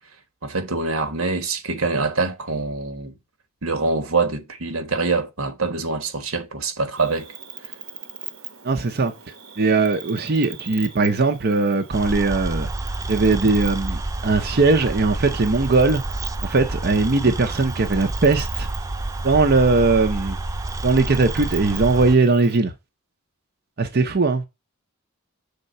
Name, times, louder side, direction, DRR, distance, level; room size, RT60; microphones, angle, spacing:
voice 1, 0.4-3.1 3.6-7.3, right 3 dB, 85° right, 1.3 m, -24 dB
Cricket, 7.0-22.6, right 8 dB, 65° right, 1.0 m, -41 dB
voice 2, 8.6-9.1 9.6-12.7 13.1-18.7 19.2-20.4 20.8-22.7 23.8-24.4, right 3 dB, 50° right, 0.7 m, -19 dB
sound 1, 11.9-22.2, right 2 dB, 15° right, 0.4 m, -29 dB
6.7 x 3.7 x 5.4 m
head